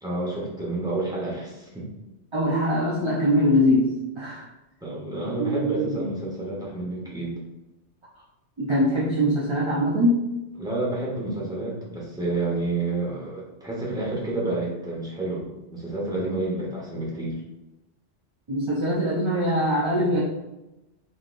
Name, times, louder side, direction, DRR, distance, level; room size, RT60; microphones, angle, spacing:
voice 1, 0.0-1.9 4.8-7.4 10.6-15.4 15.7-17.3, right 2 dB, 5° right, -6 dB, 1.1 m, -29 dB
voice 2, 2.3-4.5 5.2-6.1 8.6-10.3 18.5-20.2, equal, 35° right, -5 dB, 0.4 m, -23 dB
3.9 x 3.3 x 2.5 m, 0.99 s
omnidirectional pair, 1.2 m